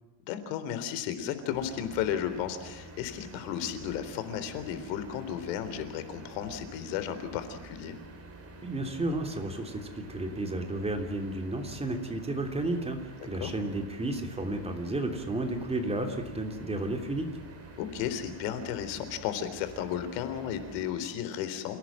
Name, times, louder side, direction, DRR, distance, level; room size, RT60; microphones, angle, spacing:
voice 1, 0.3-8.0 13.4-13.5 17.8-21.8, left 9 dB, 90° left, 10 dB, 3.9 m, -34 dB
sound 1, 1.5-20.9, right 2 dB, 30° right, 6.2 m, -48 dB
voice 2, 8.6-17.3, right 2 dB, 10° right, 4 dB, 3.1 m, -32 dB
28.5 x 18.0 x 7.5 m, 1.2 s
cardioid pair, 150°, 49 cm